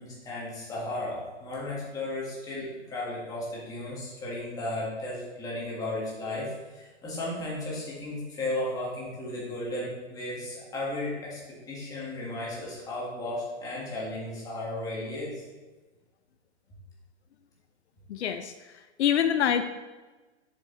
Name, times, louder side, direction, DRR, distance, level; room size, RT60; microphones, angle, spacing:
voice 1, 0.0-11.4 11.7-15.4, left 1 dB, 10° left, -6 dB, 1.8 m, -34 dB
voice 2, 18.1-18.5 19.0-19.6, left 9 dB, 70° left, 9 dB, 0.6 m, -25 dB
7.1 x 5.1 x 3.9 m, 1.2 s
hypercardioid pair, 160°, 34 cm